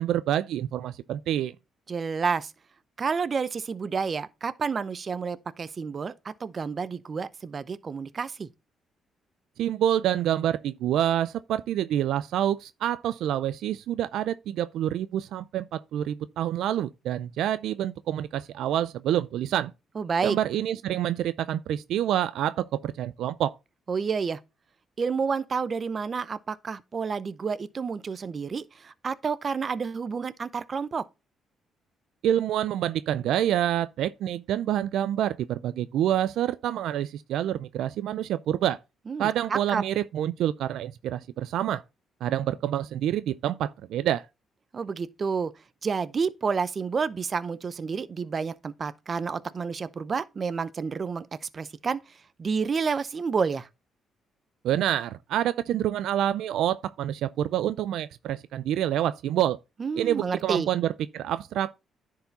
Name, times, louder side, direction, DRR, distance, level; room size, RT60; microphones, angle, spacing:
voice 1, 0.0-1.5 9.6-19.7 20.2-23.5 32.2-38.8 39.2-41.8 42.2-44.3 54.6-59.6 60.0-61.7, right 11 dB, 80° right, 0.4 m, -27 dB
voice 2, 1.9-2.5 3.0-8.5 19.9-20.4 23.9-24.4 25.0-31.0 39.1-39.8 44.7-45.5 45.8-53.7 59.8-60.7, right 5 dB, 40° right, 0.7 m, -30 dB
10.5 x 4.8 x 4.1 m
cardioid pair, 90°, 0 cm